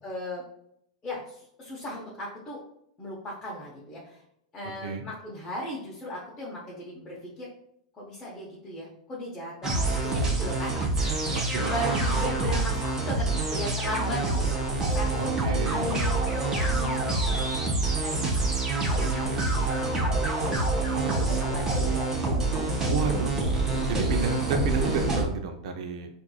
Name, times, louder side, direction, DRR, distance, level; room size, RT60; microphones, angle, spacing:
voice 1, 0.0-0.4 1.0-2.6 3.0-4.2 4.5-7.5 7.9-14.6 14.9-17.7 18.0-19.3 19.7-20.4 21.2-22.0, left 1 dB, 15° left, -6 dB, 0.8 m, -37 dB
sound 1, 9.6-25.2, right 2 dB, 15° right, 0.8 m, -26 dB
voice 2, 11.3-12.2 15.2-15.9 21.0-21.3 22.9-23.4 23.9-26.1, right 4 dB, 60° right, 5 dB, 0.6 m, -31 dB
4.5 x 2.6 x 2.3 m, 0.73 s
supercardioid pair, 145°, 4 cm